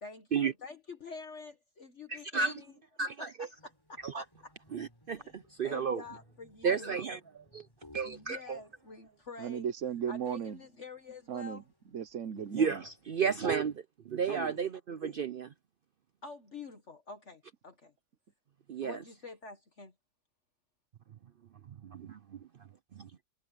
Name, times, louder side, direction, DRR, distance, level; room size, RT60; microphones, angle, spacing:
voice 1, 0.0-2.7 3.2-4.5 5.2-5.4 5.6-7.0 8.0-9.7 10.1-11.7 14.3-14.7 16.2-17.9 18.8-19.9, left 4 dB, 50° left, 1.9 m, -47 dB
voice 2, 2.1-2.6 3.0-3.3 4.0-4.2 4.7-6.0 6.6-7.2 7.5-7.6 7.9-8.6 12.5-15.5 18.7-19.0 21.8-22.4 23.0-23.1, right 6 dB, 75° right, 0.5 m, -32 dB
sound 1, 3.5-13.8, left 1 dB, 15° left, 4.5 m, -63 dB
voice 3, 9.4-10.6 11.3-11.6 11.9-12.8, right 8 dB, 55° right, 1.3 m, -36 dB
omnidirectional pair, 1.6 m